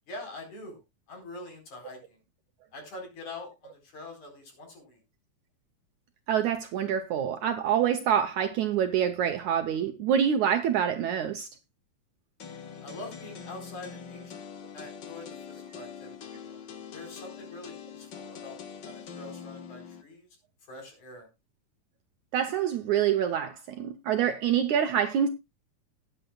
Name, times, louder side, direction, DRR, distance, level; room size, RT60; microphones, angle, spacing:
voice 1, 0.1-0.8 1.1-2.2 2.7-5.0 12.8-14.5 14.7-16.2 16.9-20.3 20.7-21.3, left 2 dB, 55° left, 5.6 m, -44 dB
voice 2, 6.3-11.5 22.3-25.3, right 9 dB, 75° right, 1.9 m, -26 dB
sound 1, 12.4-20.0, left 7 dB, 85° left, 0.9 m, -44 dB
19.0 x 9.0 x 2.3 m
omnidirectional pair, 4.1 m